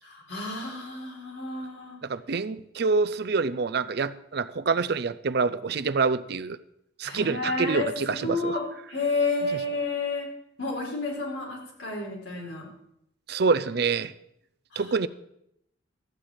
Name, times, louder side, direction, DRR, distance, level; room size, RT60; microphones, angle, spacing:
voice 1, 0.0-2.0 3.3-3.6 7.0-8.6 8.9-10.3 10.6-12.7 14.7-14.9, left 3 dB, 80° left, -2 dB, 4.0 m, -31 dB
voice 2, 2.0-6.6 7.0-8.6 13.3-14.1 14.8-15.1, right 4 dB, 60° right, 13 dB, 0.5 m, -26 dB
13.0 x 4.8 x 8.9 m, 0.77 s
head